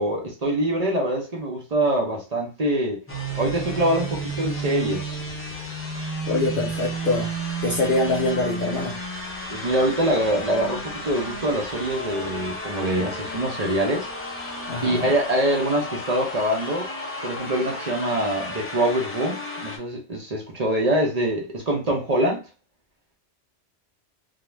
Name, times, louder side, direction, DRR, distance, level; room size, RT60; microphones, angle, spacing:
voice 1, 0.0-3.0 3.4-5.2 9.5-14.1 14.8-16.9 17.2-22.4, right 1 dB, 45° right, 0.6 m, -24 dB
sound 1, 3.1-19.8, right 1 dB, 20° left, 0.4 m, -32 dB
voice 2, 6.3-7.3 7.6-9.0 14.7-15.1, left 2 dB, 60° left, 0.8 m, -24 dB
2.4 x 2.1 x 3.1 m
omnidirectional pair, 1.2 m